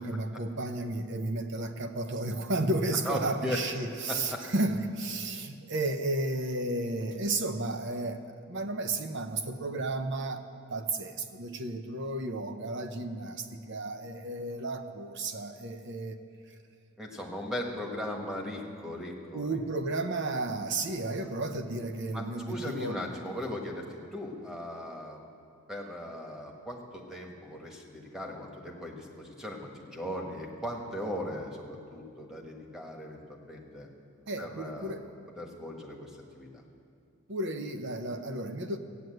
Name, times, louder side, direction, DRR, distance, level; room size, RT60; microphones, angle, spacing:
voice 1, 0.0-10.4 10.7-16.2 19.3-23.0 34.3-35.1 37.3-38.8, right 2 dB, 55° right, 7 dB, 0.9 m, -33 dB
voice 2, 3.0-3.6 4.1-4.4 17.0-19.6 22.1-25.2 25.7-33.9 34.4-35.0 35.4-36.5, left 1 dB, ahead, 0 dB, 1.5 m, -38 dB
15.0 x 9.4 x 7.8 m, 2.4 s
head